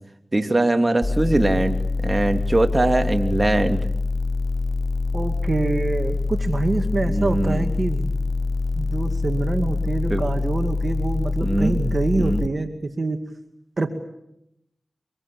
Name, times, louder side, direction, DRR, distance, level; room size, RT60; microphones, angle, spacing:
voice 1, 0.3-1.8 2.0-3.8 7.1-7.6 10.1-10.2 11.4-11.8 12.2-12.4, right 2 dB, 35° right, 6 dB, 2.9 m, -21 dB
sound 1, 1.0-12.5, left 3 dB, 35° left, 0.9 m, -25 dB
voice 2, 5.1-8.1 8.7-13.2 13.8-14.1, right 3 dB, 55° right, 5 dB, 2.4 m, -25 dB
25.5 x 23.0 x 8.7 m, 0.81 s
cardioid pair, 40°, 0 cm